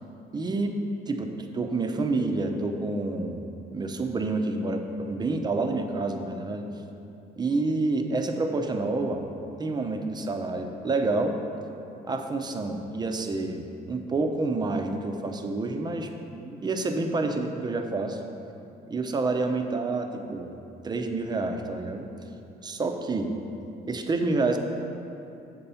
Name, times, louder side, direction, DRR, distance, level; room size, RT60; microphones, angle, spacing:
voice 1, 0.3-0.8 1.1-3.4 3.7-6.6 7.4-9.2 9.6-11.4 12.1-13.6 13.9-18.2 18.9-20.5 20.8-22.1 22.6-23.3 23.9-24.6, right 3 dB, 25° right, 5 dB, 0.7 m, -28 dB
7.6 x 4.2 x 6.9 m, 2.8 s
cardioid pair, 110°, 17 cm